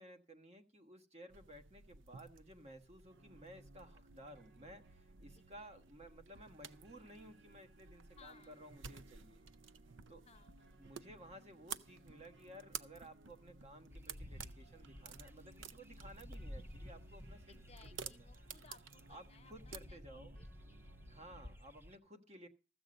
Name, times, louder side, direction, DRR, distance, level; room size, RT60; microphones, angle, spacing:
voice 1, 0.0-9.4 10.1-10.2 10.8-17.4 18.0-18.3 19.1-20.4 21.0-22.5, right 1 dB, 35° right, 1.3 m, -56 dB
sound 1, 1.3-19.8, right 7 dB, 80° right, 0.6 m, -54 dB
sound 2, 3.1-21.6, right 2 dB, 65° right, 1.0 m, -65 dB
voice 2, 5.3-5.8 8.2-8.7 10.3-10.9 17.5-21.1, left 6 dB, 35° left, 0.7 m, -64 dB
sound 3, 13.9-22.0, equal, 10° right, 0.7 m, -53 dB
14.0 x 7.8 x 5.2 m
head